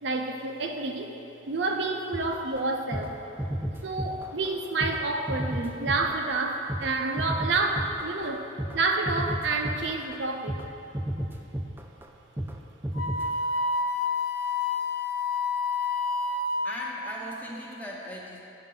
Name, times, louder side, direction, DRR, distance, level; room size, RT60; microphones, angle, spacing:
voice 1, 0.0-1.1 1.5-3.2 3.8-8.5 8.7-10.6, right 3 dB, 65° right, 3 dB, 0.6 m, -29 dB
sound 1, 2.1-8.8 9.1-10.2 10.5-10.7 10.9-12.1 12.4-12.6 12.8-13.3, equal, 10° right, 0.3 m, -33 dB
Wind instrument woodwind instrument, 12.9-17.1, left 4 dB, 55° left, 0.5 m, -29 dB
voice 2, 16.6-18.4, equal, 10° left, -3 dB, 0.8 m, -38 dB
8.8 x 6.7 x 3.8 m, 2.9 s
head